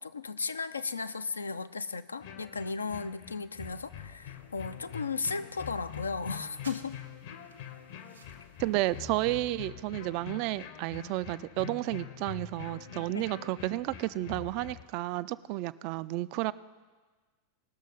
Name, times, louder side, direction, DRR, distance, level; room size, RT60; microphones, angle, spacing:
voice 1, 0.0-7.0 13.1-13.3, left 4 dB, 75° left, 12 dB, 0.4 m, -35 dB
sound 1, 2.2-14.9, left 7 dB, 55° left, 0.9 m, -45 dB
sound 2, 4.3-9.4, right 4 dB, 75° right, 1.1 m, -58 dB
voice 2, 8.6-16.5, right 17 dB, 45° right, 16 dB, 0.3 m, -32 dB
19.0 x 6.5 x 5.3 m, 1.4 s
figure-of-eight pair, 90°, 0 cm